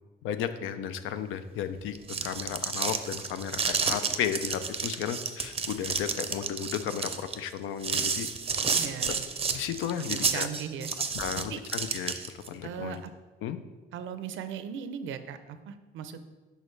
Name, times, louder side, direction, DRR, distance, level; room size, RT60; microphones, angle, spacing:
voice 1, 0.2-2.0 2.2-8.3 9.1-9.2 9.5-10.5 11.2-12.1 12.5-13.0 13.4-13.6, left 9 dB, 85° left, 11 dB, 0.4 m, -34 dB
sound 1, 1.9-12.5, right 5 dB, 30° right, 0.5 m, -31 dB
voice 2, 8.7-9.3 10.0-10.9 11.5-11.6 12.6-13.1 13.9-16.3, right 7 dB, 75° right, 10 dB, 0.5 m, -38 dB
6.3 x 5.0 x 3.2 m, 1.2 s
cardioid pair, 90°, 20 cm